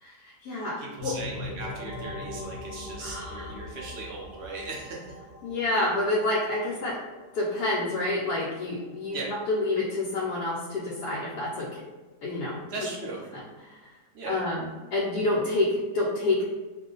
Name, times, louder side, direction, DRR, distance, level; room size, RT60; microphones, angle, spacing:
voice 1, 0.0-1.1 3.0-3.5 5.4-7.0 7.3-9.2 9.5-11.8 12.2-12.6 13.7-13.8 14.3-16.5, left 2 dB, 75° left, -5 dB, 1.1 m, -28 dB
voice 2, 0.8-5.1 9.1-9.3 12.7-13.2 14.1-14.4, right 3 dB, 75° right, -3 dB, 0.5 m, -38 dB
sound 1, 1.0-10.5, left 2 dB, 40° right, 0.8 m, -42 dB
2.6 x 2.4 x 3.7 m, 1.2 s
omnidirectional pair, 1.8 m